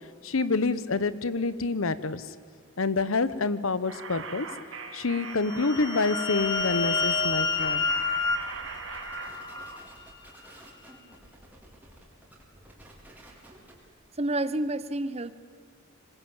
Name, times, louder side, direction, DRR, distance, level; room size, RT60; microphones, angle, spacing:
voice 1, 0.2-2.3 2.8-4.5 4.9-7.9, left 3 dB, 75° left, 15 dB, 1.0 m, -27 dB
sound 1, 3.8-9.8, right 5 dB, 65° right, 2.1 m, -40 dB
sound 2, 5.4-9.9, left 4 dB, 20° left, 1.3 m, -29 dB
sound 3, 6.4-13.9, right 1 dB, 10° right, 4.5 m, -52 dB
voice 2, 14.2-15.3, right 1 dB, 30° right, 14 dB, 0.8 m, -29 dB
25.5 x 21.0 x 8.9 m, 2.1 s
head